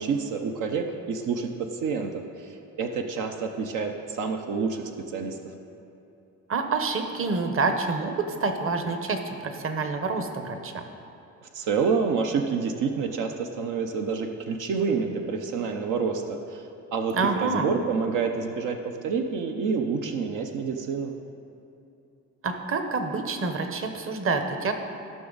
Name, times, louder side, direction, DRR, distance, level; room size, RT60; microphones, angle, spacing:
voice 1, 0.0-2.5 2.8-4.8 5.1-5.4 11.5-16.6 16.9-17.2 17.4-18.8 19.0-21.1, right 5 dB, 85° right, 4 dB, 0.8 m, -28 dB
voice 2, 6.5-10.8 17.1-17.7 22.4-24.7, right 4 dB, 45° right, 6 dB, 1.0 m, -27 dB
15.5 x 6.1 x 4.0 m, 2.8 s
cardioid pair, 90°, 30 cm